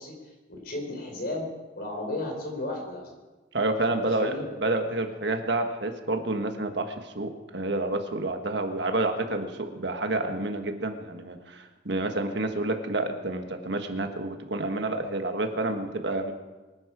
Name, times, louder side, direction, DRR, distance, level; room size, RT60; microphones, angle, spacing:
voice 1, 0.0-1.5 1.7-3.1 3.9-4.4, left 2 dB, 55° left, 1 dB, 4.5 m, -34 dB
voice 2, 3.5-4.3 4.6-16.3, right 2 dB, 65° right, 5 dB, 1.5 m, -29 dB
24.0 x 10.5 x 4.8 m, 1.2 s
head